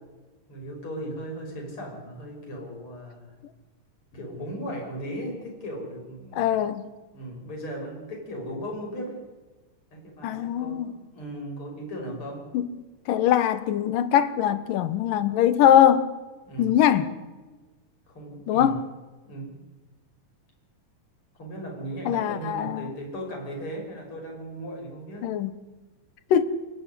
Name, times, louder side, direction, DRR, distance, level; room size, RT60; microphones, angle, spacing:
voice 1, 0.5-3.3 4.1-6.6 7.1-9.3 9.9-12.5 16.5-16.7 18.1-18.7 19.2-19.6 21.4-25.3, right 1 dB, 40° left, 6.8 m, -37 dB
voice 2, 6.3-6.8 10.2-10.9 12.5-12.6 13.1-16.1 16.6-17.1 18.5-18.8 22.1-22.9 25.2-25.5 26.3-26.4, left 10 dB, 85° left, 2.8 m, -22 dB
28.5 x 11.5 x 9.9 m
omnidirectional pair, 3.8 m